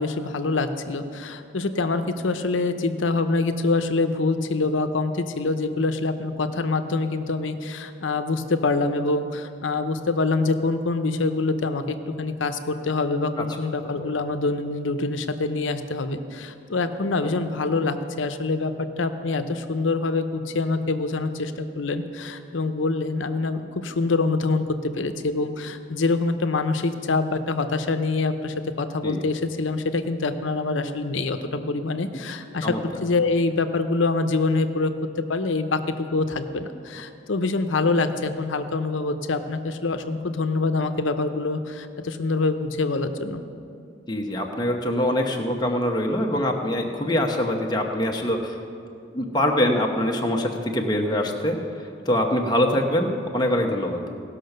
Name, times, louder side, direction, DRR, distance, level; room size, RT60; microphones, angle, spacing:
voice 1, 0.0-32.7 33.0-34.9 35.3-43.4, left 3 dB, 90° left, 9 dB, 0.7 m, -25 dB
voice 2, 44.1-48.5 49.1-54.0, left 1 dB, 20° left, 1 dB, 1.0 m, -24 dB
17.5 x 5.9 x 6.6 m, 2.6 s
head